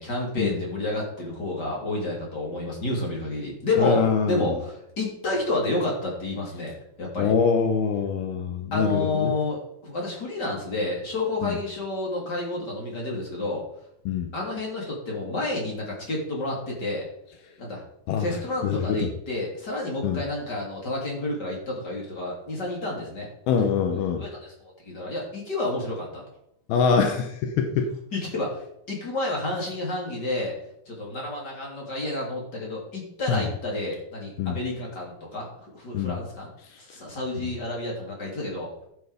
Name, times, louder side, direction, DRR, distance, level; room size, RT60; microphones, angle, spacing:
voice 1, 0.0-7.3 8.7-13.6 14.3-17.0 17.6-17.8 18.2-23.3 24.2-24.5 24.8-26.2 28.1-30.5 30.9-36.5 36.9-38.8, left 2 dB, 30° left, -2 dB, 3.5 m, -30 dB
voice 2, 3.8-4.5 7.2-9.3 11.4-11.6 14.1-14.3 18.1-18.3 18.6-19.1 20.0-20.2 23.5-24.2 26.7-28.0 33.3-33.5 34.4-34.6 35.9-36.2, left 6 dB, 80° left, 5 dB, 2.8 m, -24 dB
12.5 x 8.2 x 5.1 m, 0.74 s
omnidirectional pair, 4.4 m